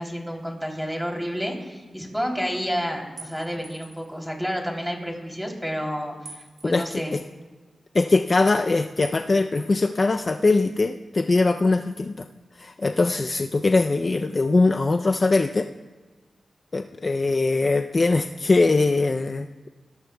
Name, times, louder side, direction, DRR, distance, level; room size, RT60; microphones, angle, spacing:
voice 1, 0.0-7.2, equal, ahead, 1 dB, 3.1 m, -30 dB
sound 1, 3.2-4.1 6.3-7.2 9.0-9.2 9.6-10.5, right 4 dB, 80° right, 4.0 m, -46 dB
voice 2, 6.7-7.2 7.9-12.3 12.5-15.7 16.7-19.7, left 3 dB, 45° left, 6 dB, 0.5 m, -22 dB
22.5 x 14.5 x 2.3 m, 1.3 s
cardioid pair, 55°, 0 cm